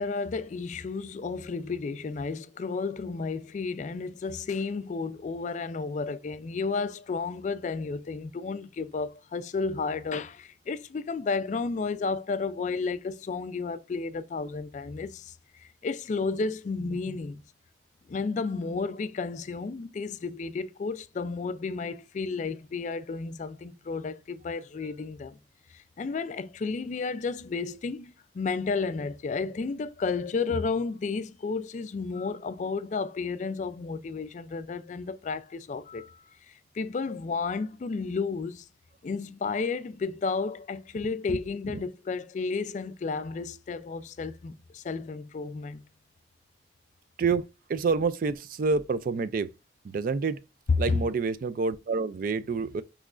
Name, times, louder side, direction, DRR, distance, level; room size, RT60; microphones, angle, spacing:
voice 1, 0.0-17.4 18.1-25.4 25.7-38.6 39.0-45.8 50.8-51.0, left 4 dB, 40° left, 0.3 m, -32 dB
voice 2, 41.0-41.4 41.7-41.8 47.2-49.5 49.8-50.4 50.8-52.8, right 4 dB, 50° right, 0.3 m, -28 dB
5.9 x 3.1 x 2.4 m
head